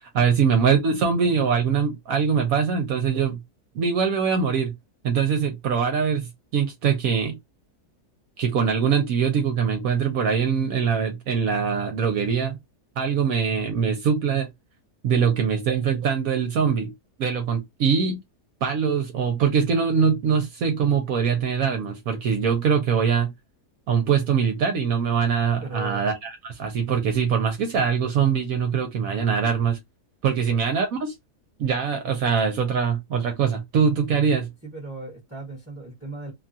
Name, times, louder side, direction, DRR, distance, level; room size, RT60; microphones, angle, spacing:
voice 1, 0.0-3.4 3.7-4.7 5.0-7.4 8.4-12.6 13.0-14.5 15.0-16.9 17.2-18.2 18.6-23.3 23.9-29.8 30.2-31.1 31.6-34.5, right 6 dB, 65° right, 1.0 m, -23 dB
voice 2, 25.6-26.0 30.5-30.6 34.6-36.3, right 2 dB, 10° right, 0.9 m, -38 dB
2.9 x 2.3 x 2.6 m
omnidirectional pair, 1.7 m